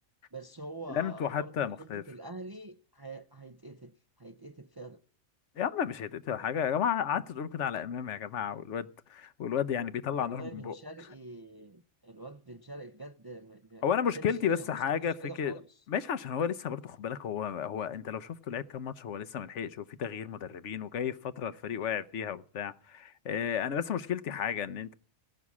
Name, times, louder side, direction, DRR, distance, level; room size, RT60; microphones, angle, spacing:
voice 1, 0.3-5.0 10.1-13.8 14.2-15.8, right 2 dB, 30° right, 0.4 m, -46 dB
voice 2, 0.9-2.0 5.6-10.8 13.8-15.5 15.9-24.9, left 8 dB, 80° left, 1.1 m, -33 dB
16.5 x 6.1 x 8.3 m
omnidirectional pair, 1.2 m